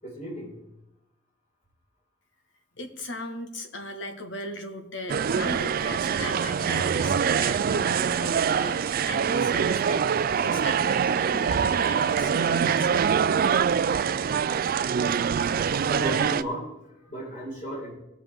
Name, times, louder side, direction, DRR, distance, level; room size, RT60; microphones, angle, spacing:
voice 1, 0.0-0.6 15.1-15.2 15.9-17.9, right 1 dB, 40° left, -4 dB, 4.9 m, -35 dB
voice 2, 2.7-13.3, left 1 dB, 70° left, 5 dB, 1.5 m, -38 dB
sound 1, 5.1-16.4, right 7 dB, 50° right, 0.4 m, -24 dB
19.0 x 7.2 x 3.6 m, 0.94 s
head